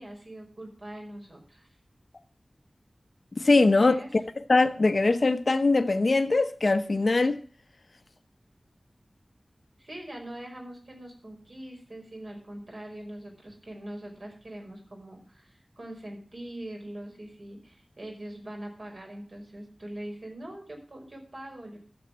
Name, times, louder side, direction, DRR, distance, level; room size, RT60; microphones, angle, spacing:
voice 1, 0.0-1.7 3.5-4.1 9.8-21.8, right 1 dB, 60° right, 5.4 m, -42 dB
voice 2, 3.3-3.9 4.5-7.4, left 3 dB, 65° left, 0.9 m, -22 dB
12.5 x 7.2 x 7.4 m
wide cardioid pair, 70°, 0 cm